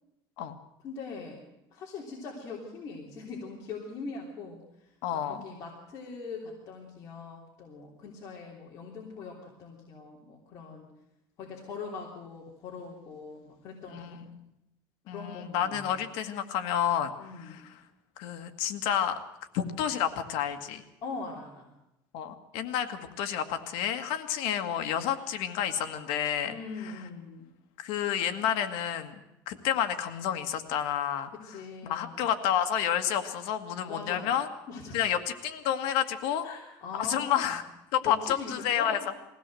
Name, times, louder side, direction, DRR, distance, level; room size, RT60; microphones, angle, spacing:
voice 1, 0.8-1.4 1.7-10.9 11.4-14.2 15.0-15.9 17.1-17.6 21.0-21.7 26.5-27.5 31.3-32.3 33.9-34.3 34.7-35.0 36.4-37.6 38.0-39.0, left 4 dB, 35° left, -3 dB, 3.3 m, -42 dB
voice 2, 5.0-5.5 13.9-14.4 15.1-17.1 17.4-17.6 18.2-19.1 19.5-20.8 22.1-26.5 27.8-29.1 29.5-31.3 31.8-34.5 34.9-36.5 36.9-37.6 37.9-39.0, left 9 dB, 70° left, 7 dB, 1.9 m, -30 dB
21.5 x 16.5 x 7.7 m, 0.88 s
cardioid pair, 175°, 9 cm